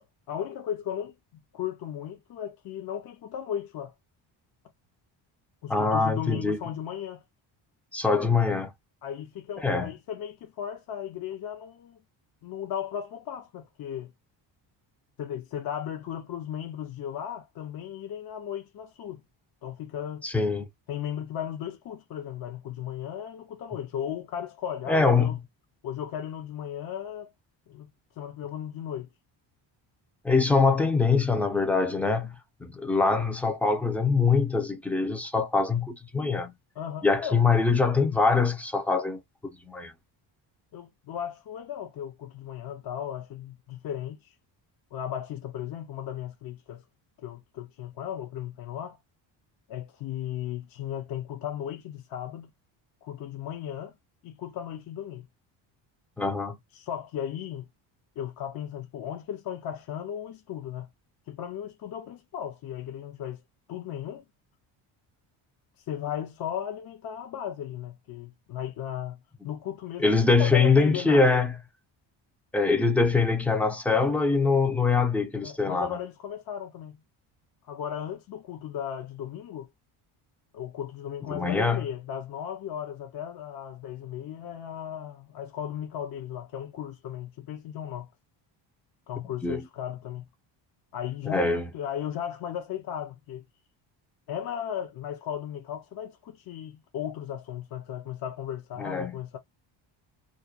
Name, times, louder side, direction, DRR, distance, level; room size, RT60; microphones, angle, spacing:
voice 1, 0.0-3.9 5.6-7.2 9.0-12.0 12.4-14.1 15.2-19.2 19.6-20.3 20.9-25.4 25.8-27.3 27.7-27.9 28.2-29.1 36.8-37.4 40.7-44.3 44.9-46.8 47.2-49.0 49.7-52.5 53.0-53.9 54.2-55.2 56.7-57.7 58.2-60.9 61.3-63.4 63.7-64.2 65.9-71.4 75.4-77.0 77.6-79.7 80.5-88.1 89.1-90.3 90.9-93.4 94.3-99.4, left 10 dB, 50° left, 0.6 m, -36 dB
voice 2, 5.7-6.6 7.9-8.7 9.6-9.9 20.2-20.7 24.9-25.4 30.2-36.5 37.0-39.2 39.6-39.9 56.2-56.6 69.4-69.5 70.0-71.6 72.5-76.0 81.3-81.9 89.4-89.6 91.3-91.7 98.8-99.2, left 4 dB, 5° left, 0.4 m, -23 dB
2.3 x 2.2 x 2.4 m
cardioid pair, 100°, 48 cm